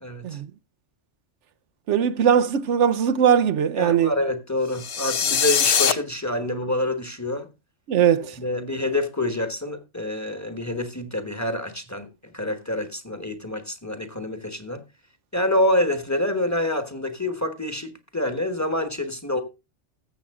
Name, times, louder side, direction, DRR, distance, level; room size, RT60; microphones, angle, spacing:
voice 1, 1.9-4.1 7.9-8.4, right 8 dB, 75° right, 1.0 m, -20 dB
voice 2, 3.8-7.5 8.4-12.1 12.3-14.8 15.3-19.4, left 1 dB, 15° left, 1.3 m, -27 dB
sound 1, 4.7-5.9, left 7 dB, 55° left, 1.0 m, -21 dB
14.0 x 7.4 x 3.6 m
omnidirectional pair, 1.2 m